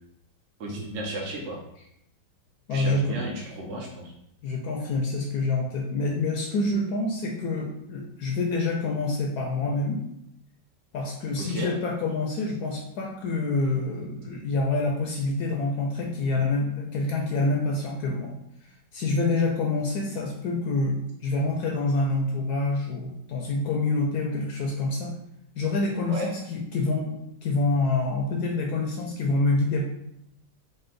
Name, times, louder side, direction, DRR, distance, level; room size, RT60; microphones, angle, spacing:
voice 1, 0.6-1.6 2.7-4.1 11.4-11.7 26.1-26.3, right 1 dB, 60° right, -2 dB, 0.7 m, -33 dB
voice 2, 2.7-3.2 4.4-10.0 10.9-18.3 18.9-25.1 25.6-27.1 27.4-29.8, left 2 dB, 70° left, 0 dB, 1.0 m, -27 dB
4.2 x 2.1 x 3.8 m, 0.77 s
omnidirectional pair, 1.9 m